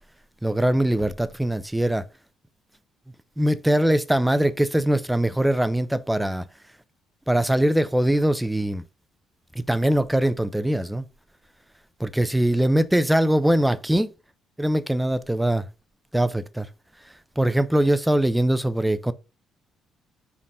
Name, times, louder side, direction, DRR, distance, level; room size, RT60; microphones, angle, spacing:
voice 1, 0.4-2.0 3.4-6.4 7.3-8.8 9.5-11.0 12.0-14.1 14.6-15.6 16.1-16.7 17.4-19.1, right 1 dB, 5° right, 0.7 m, -22 dB
5.3 x 4.1 x 5.4 m
figure-of-eight pair, 45°, 0 cm